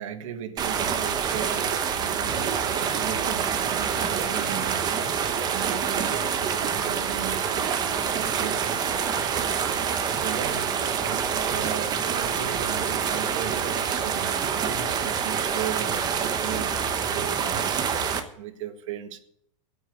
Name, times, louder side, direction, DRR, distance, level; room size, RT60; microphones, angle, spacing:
voice 1, 0.0-4.9 5.5-9.5 10.1-17.8 18.3-19.2, right 10 dB, 70° right, 1.6 m, -37 dB
sound 1, 0.6-18.2, right 7 dB, 25° right, 1.1 m, -26 dB
10.5 x 8.6 x 9.2 m
supercardioid pair, 155°, 17 cm